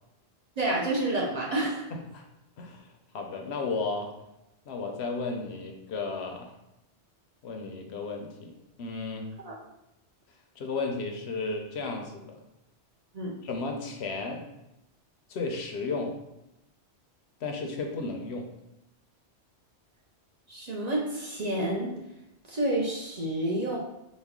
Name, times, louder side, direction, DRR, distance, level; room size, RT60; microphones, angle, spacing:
voice 1, 0.6-1.8 9.4-9.6 13.1-13.3 20.5-21.9 22.5-23.8, right 1 dB, 45° right, -3 dB, 0.6 m, -29 dB
voice 2, 1.9-2.2 2.6-2.9 3.1-4.1 4.7-6.5 7.4-8.5 8.8-9.2 10.6-12.4 13.4-14.5 15.3-16.2 17.4-18.5, left 3 dB, 75° left, 3 dB, 0.9 m, -33 dB
4.2 x 2.2 x 3.5 m, 0.89 s
omnidirectional pair, 1.1 m